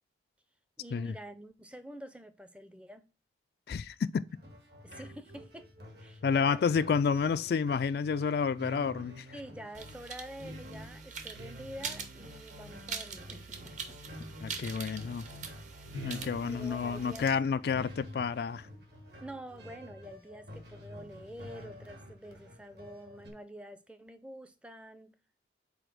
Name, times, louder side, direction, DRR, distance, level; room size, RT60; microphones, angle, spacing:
voice 1, 0.8-3.1 4.8-5.7 6.0-6.7 9.3-14.0 16.4-17.3 19.2-25.1, right 1 dB, 5° right, 0.5 m, -47 dB
voice 2, 3.7-4.3 6.2-9.3 14.4-15.3 15.9-18.7, left 6 dB, 55° left, 0.3 m, -30 dB
sound 1, 4.3-23.3, equal, 65° right, 1.7 m, -48 dB
sound 2, 9.7-17.3, right 6 dB, 40° right, 0.8 m, -44 dB
5.1 x 4.2 x 5.9 m
head